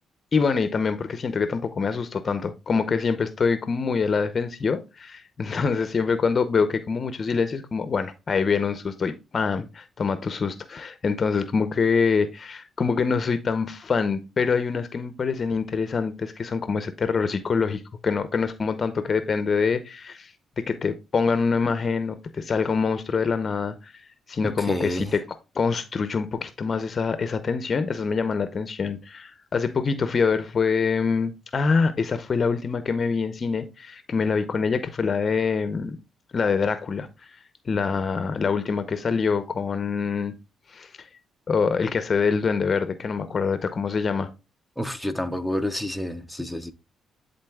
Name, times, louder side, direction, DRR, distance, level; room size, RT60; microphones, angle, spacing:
voice 1, 0.3-23.9 24.3-25.2 25.6-36.0 36.3-37.1 37.7-40.3 40.7-41.1 41.5-44.3, left 5 dB, 40° left, 0.6 m, -25 dB
voice 2, 24.4-25.1 44.8-46.7, equal, ahead, 0.6 m, -29 dB
11.0 x 3.9 x 2.2 m
cardioid pair, 90°, 0 cm